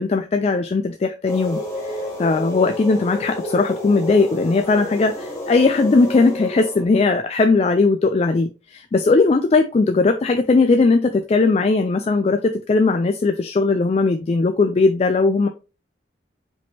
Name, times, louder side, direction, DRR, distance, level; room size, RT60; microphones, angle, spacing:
voice 1, 0.0-15.5, left 3 dB, 35° left, 0.3 m, -18 dB
sound 1, 1.3-6.8, left 1 dB, 15° left, 1.4 m, -30 dB
5.0 x 3.6 x 2.7 m
head